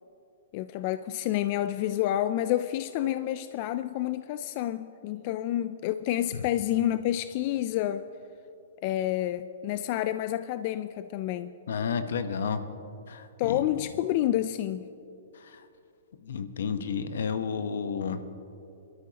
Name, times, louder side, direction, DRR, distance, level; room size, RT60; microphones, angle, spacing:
voice 1, 0.5-8.0 8.8-11.5 13.4-14.9, left 13 dB, 40° left, 12 dB, 0.3 m, -29 dB
voice 2, 11.7-12.6 13.1-13.6 15.3-15.7 16.2-18.2, left 6 dB, 75° left, 10 dB, 0.9 m, -31 dB
24.5 x 13.0 x 2.9 m, 2.8 s
hypercardioid pair, 155°, 0 cm